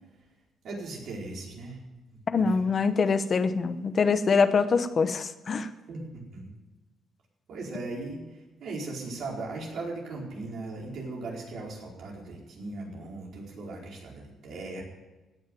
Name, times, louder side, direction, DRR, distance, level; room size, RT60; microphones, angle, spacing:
voice 1, 0.6-1.8 2.4-2.7 5.9-6.5 7.5-14.8, right 2 dB, 65° right, -2 dB, 4.8 m, -38 dB
voice 2, 2.3-5.7, left 5 dB, 45° left, 11 dB, 0.9 m, -24 dB
17.0 x 6.4 x 9.3 m, 1.1 s
cardioid pair, 90°, 0 cm